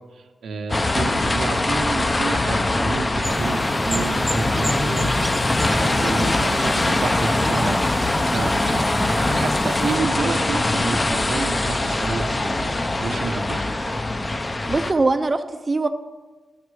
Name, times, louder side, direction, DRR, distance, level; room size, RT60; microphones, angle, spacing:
voice 1, 0.1-14.0, right 4 dB, 85° right, 5 dB, 0.8 m, -30 dB
sound 1, 0.7-14.9, left 2 dB, 25° left, 0.6 m, -22 dB
sound 2, 3.2-10.0, equal, 5° left, 1.1 m, -30 dB
voice 2, 14.7-15.9, right 3 dB, 30° right, 7 dB, 0.5 m, -21 dB
12.0 x 5.9 x 4.8 m, 1.3 s
wide cardioid pair, 95°, 0 cm